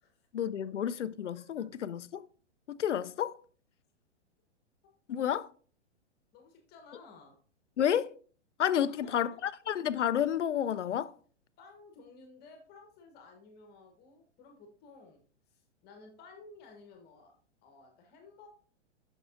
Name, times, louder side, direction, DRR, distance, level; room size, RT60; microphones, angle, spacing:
voice 1, 0.3-2.3 2.7-3.4 5.1-5.5 7.8-8.1 8.6-11.1, left 9 dB, 80° left, 0.5 m, -30 dB
voice 2, 6.3-7.3 8.9-9.2 11.6-15.2 15.5-17.3 17.6-18.5, left 3 dB, 30° left, 1.3 m, -54 dB
7.9 x 6.2 x 2.5 m
figure-of-eight pair, 110°, 35 cm